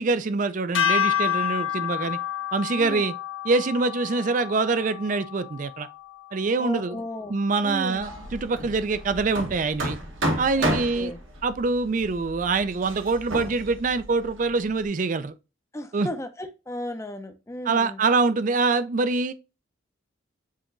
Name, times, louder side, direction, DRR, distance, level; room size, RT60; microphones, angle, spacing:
voice 1, 0.0-2.2 2.5-3.1 3.4-5.9 6.3-7.0 7.3-10.0 10.4-11.1 11.4-15.3 15.9-16.1 17.6-19.3, right 3 dB, 40° right, 0.4 m, -25 dB
sound 1, 0.7-7.1, left 9 dB, 70° left, 0.8 m, -29 dB
voice 2, 2.8-3.1 6.6-7.4 7.6-8.1 10.6-11.2 15.7-18.0, left 1 dB, 15° left, 0.5 m, -35 dB
Hammer, 8.0-14.8, right 1 dB, 75° right, 1.3 m, -32 dB
7.3 x 2.9 x 2.5 m
head